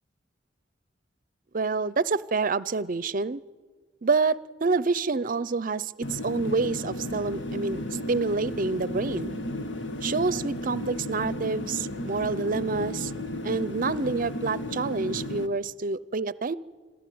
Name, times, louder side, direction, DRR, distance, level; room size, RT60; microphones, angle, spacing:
voice 1, 1.5-3.4 4.0-7.8 8.1-9.4 10.0-13.1 13.4-16.6, right 4 dB, 50° right, 19 dB, 0.6 m, -27 dB
sound 1, 6.0-15.5, left 1 dB, 80° left, 1.3 m, -34 dB
27.0 x 14.0 x 9.4 m, 1.4 s
head